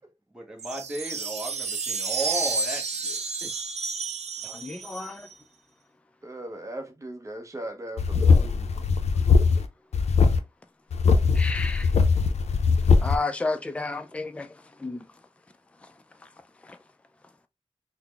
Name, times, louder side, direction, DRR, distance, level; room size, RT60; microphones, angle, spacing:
voice 1, 0.3-3.5, right 1 dB, 5° right, 1.0 m, -35 dB
sound 1, 0.6-5.3, right 4 dB, 90° right, 0.6 m, -31 dB
voice 2, 4.4-5.2 11.3-11.9 13.0-14.5 14.8-15.0, left 3 dB, 10° left, 0.3 m, -31 dB
voice 3, 6.2-8.7, right 1 dB, 30° right, 0.7 m, -38 dB
sound 2, 8.0-9.6 9.9-10.4 10.9-13.2, left 5 dB, 90° left, 0.5 m, -20 dB
4.0 x 2.0 x 3.3 m
wide cardioid pair, 120°, 11 cm